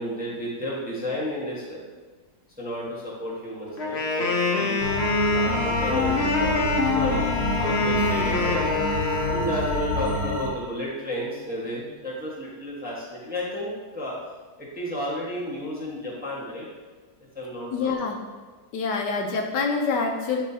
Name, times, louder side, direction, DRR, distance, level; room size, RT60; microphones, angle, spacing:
voice 1, 0.0-1.8 2.6-4.8 5.3-7.2 7.6-8.7 9.2-14.2 14.6-16.7 17.3-17.9, equal, 5° right, -6 dB, 0.9 m, -32 dB
Wind instrument woodwind instrument, 3.8-9.6, left 3 dB, 55° left, 0.7 m, -25 dB
sound 1, 4.8-10.5, left 1 dB, 35° left, 1.3 m, -27 dB
voice 2, 17.7-18.2 18.7-20.4, left 4 dB, 70° left, 2 dB, 1.2 m, -26 dB
9.4 x 3.7 x 2.7 m, 1.4 s
omnidirectional pair, 2.0 m